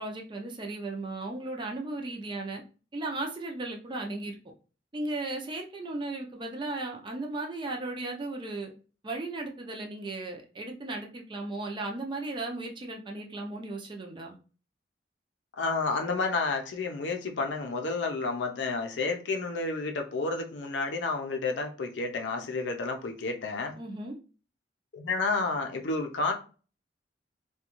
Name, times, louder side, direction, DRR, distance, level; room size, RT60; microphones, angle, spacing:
voice 1, 0.0-2.6 2.9-4.4 4.9-8.7 9.0-14.4 23.8-24.1, right 2 dB, 25° right, 0.4 m, -36 dB
voice 2, 15.6-23.8 24.9-26.3, left 3 dB, 85° left, 0.5 m, -30 dB
2.4 x 2.2 x 2.9 m
head